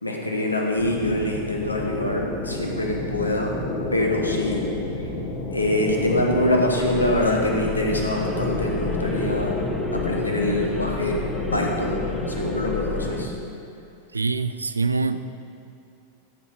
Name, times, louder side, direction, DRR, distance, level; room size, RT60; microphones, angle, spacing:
voice 1, 0.0-3.5 3.9-4.6 5.5-9.6 9.9-11.2 11.5-12.0 12.3-13.3, left 1 dB, 80° left, 0 dB, 1.2 m, -24 dB
sound 1, 0.8-13.3, left 2 dB, 40° left, 1.6 m, -30 dB
sound 2, 6.8-13.2, left 2 dB, 10° left, 0.7 m, -34 dB
voice 2, 14.1-15.2, right 4 dB, 80° right, 11 dB, 0.4 m, -24 dB
13.0 x 5.4 x 4.8 m, 2.6 s
figure-of-eight pair, 90°, 0 cm